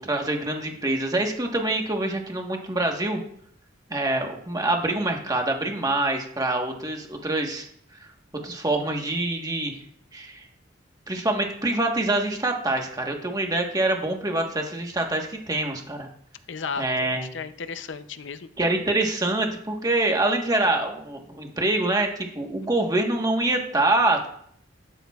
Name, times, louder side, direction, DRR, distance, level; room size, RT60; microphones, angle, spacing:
voice 1, 0.0-3.2 3.9-7.7 8.4-9.8 10.1-10.5 11.1-16.1 16.8-17.2 18.6-22.1 22.3-24.3, right 2 dB, 20° right, 2 dB, 1.3 m, -25 dB
voice 2, 16.5-18.5, left 5 dB, 70° left, 12 dB, 0.6 m, -34 dB
12.0 x 9.0 x 2.4 m, 0.66 s
head